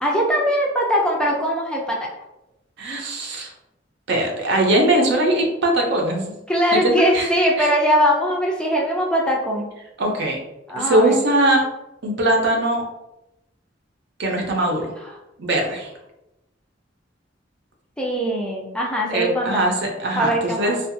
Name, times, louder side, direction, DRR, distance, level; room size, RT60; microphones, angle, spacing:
voice 1, 0.0-2.1 6.5-9.7 10.7-11.2 15.0-15.1 18.0-19.8 20.2-20.8, equal, 5° left, -2 dB, 0.4 m, -21 dB
voice 2, 2.8-3.5 4.1-6.3 7.0-7.3 7.6-7.7 10.0-10.4 10.8-11.6 12.0-12.8 14.2-14.9 15.4-15.9 19.1-19.7 20.0-20.8, right 1 dB, 65° right, 0 dB, 0.6 m, -20 dB
2.7 x 2.4 x 2.5 m, 0.92 s
head